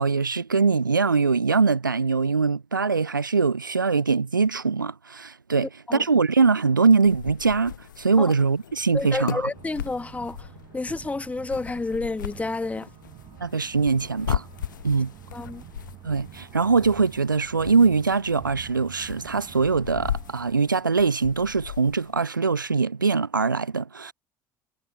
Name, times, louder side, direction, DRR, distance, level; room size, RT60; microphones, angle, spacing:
voice 1, 0.0-9.5 13.4-14.5 14.8-15.1 16.0-24.1, right 4 dB, 85° right, 0.4 m, -22 dB
sound 1, 7.0-22.3, left 10 dB, 75° left, 0.7 m, -38 dB
voice 2, 8.9-12.9 15.3-15.6, left 3 dB, 15° left, 1.4 m, -30 dB
sound 2, 9.5-20.6, right 13 dB, 50° right, 4.4 m, -46 dB
figure-of-eight pair, 60°, 10 cm